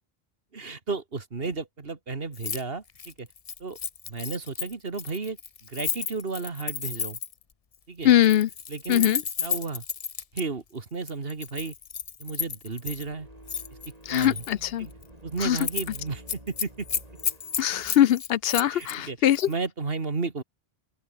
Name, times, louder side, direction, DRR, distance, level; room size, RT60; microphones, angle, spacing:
voice 1, 0.5-3.3 3.6-3.8 4.1-5.4 5.6-7.2 7.9-8.1 8.7-9.1 9.4-9.8 10.3-11.7 12.2-13.3 14.1-14.4 14.8-14.9 15.2-16.9 18.7-19.2 19.5-20.4, right 4 dB, 70° right, 2.2 m, -33 dB
Keys jangling, 2.3-2.6 2.9-7.4 8.1-10.4 11.1-13.0 13.5-14.5 14.9-15.1 15.4-16.0 16.3-19.0 19.3-19.5, left 6 dB, 40° left, 0.7 m, -33 dB
voice 2, 8.0-8.5 8.9-9.2 14.1-14.9 15.4-15.6 17.6-19.5, left 11 dB, 75° left, 0.8 m, -22 dB
sound 1, 12.7-17.9, right 1 dB, 40° right, 7.3 m, -49 dB
open air
omnidirectional pair, 1.0 m